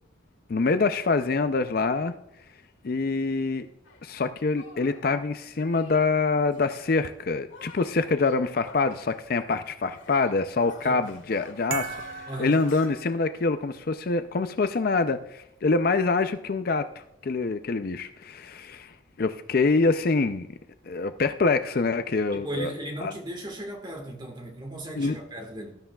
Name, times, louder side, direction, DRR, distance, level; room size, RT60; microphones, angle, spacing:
voice 1, 0.5-2.1 2.8-3.7 4.0-12.0 12.4-16.9 17.2-20.5 20.8-22.7 23.0-23.1 24.9-25.2, left 3 dB, 45° left, 10 dB, 0.4 m, -25 dB
Shatter, 3.8-4.0 4.5-5.1 5.6-6.1 6.5-7.1 7.5-9.7 9.9-12.9, left 3 dB, 75° left, 1.7 m, -49 dB
sound 1, 11.7-13.6, right 6 dB, 45° right, 0.8 m, -37 dB
voice 2, 12.3-12.6 22.3-25.8, right 1 dB, 20° right, 3 dB, 1.6 m, -36 dB
18.5 x 11.0 x 2.3 m, 0.80 s
head